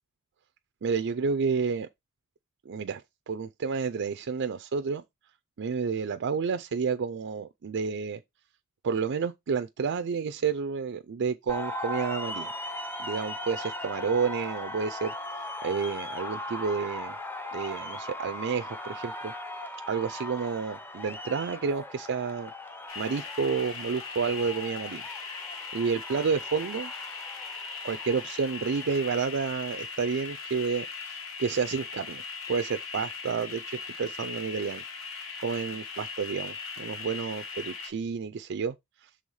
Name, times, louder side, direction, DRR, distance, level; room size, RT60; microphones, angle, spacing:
voice 1, 0.8-1.9 2.7-3.0 3.3-5.0 5.6-8.2 8.8-12.5 13.0-15.1 15.6-17.2 17.5-19.3 19.9-22.5 23.0-25.0 25.7-26.9 27.8-32.2 32.5-34.8 35.4-38.7, right 5 dB, 55° right, 0.4 m, -30 dB
sound 1, 11.5-29.2, left 1 dB, 10° left, 0.7 m, -39 dB
sound 2, 22.9-37.9, left 5 dB, 65° left, 1.6 m, -39 dB
6.3 x 3.4 x 5.4 m
head